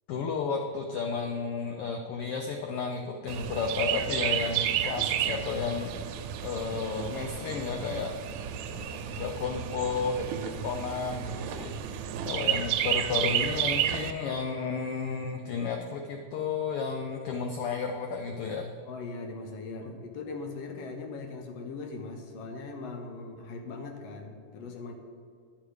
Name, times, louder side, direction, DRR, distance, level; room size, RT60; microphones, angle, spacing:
voice 1, 0.1-5.9 6.4-8.1 8.6-11.7 12.3-18.7 19.8-19.9, left 5 dB, 85° left, 4 dB, 1.2 m, -32 dB
Chirp tweet, 3.3-14.1, right 10 dB, 80° right, 1.9 m, -31 dB
voice 2, 18.9-24.9, left 3 dB, 70° left, 4 dB, 1.8 m, -40 dB
10.5 x 6.7 x 4.8 m, 2.2 s
omnidirectional pair, 3.4 m